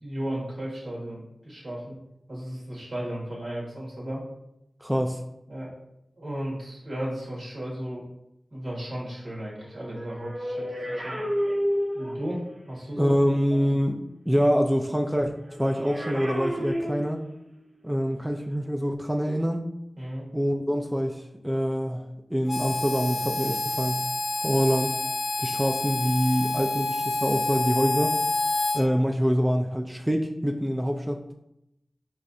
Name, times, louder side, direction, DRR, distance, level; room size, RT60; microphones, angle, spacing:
voice 1, 0.0-1.9 2.3-4.2 5.5-5.8 6.2-8.1 8.5-11.2 11.9-13.2 20.0-20.3, right 1 dB, 75° right, -5 dB, 1.5 m, -35 dB
voice 2, 4.8-5.2 12.0-12.2 13.0-14.0 14.3-17.2 17.8-19.6 20.3-24.0 24.4-25.0 25.4-28.2 28.7-31.3, equal, 10° right, 2 dB, 0.3 m, -25 dB
sound 1, 9.6-12.4 15.5-17.5 18.3-18.5, equal, 45° right, 0.8 m, -30 dB
Harmonica, 22.5-28.8, left 2 dB, 85° left, 0.4 m, -28 dB
4.7 x 3.2 x 2.6 m, 0.83 s
wide cardioid pair, 55°, 0 cm